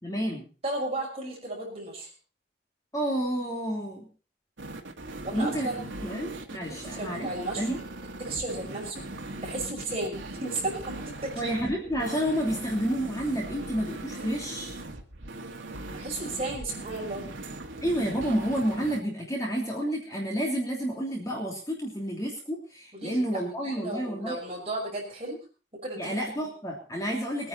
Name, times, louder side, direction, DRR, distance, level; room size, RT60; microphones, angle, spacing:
voice 1, 0.0-0.4 2.9-4.1 5.3-7.3 7.6-7.8 11.4-14.8 17.8-24.4 26.0-27.5, equal, 15° left, -1 dB, 3.0 m, -30 dB
voice 2, 0.6-2.1 5.2-5.8 6.7-7.8 8.2-9.0 9.4-11.8 15.9-17.2 22.9-25.4 25.7-26.1, right 2 dB, 30° right, -2 dB, 5.9 m, -34 dB
sound 1, 4.6-19.0, right 2 dB, 80° right, 2.1 m, -39 dB
22.0 x 9.8 x 4.3 m, 0.35 s
head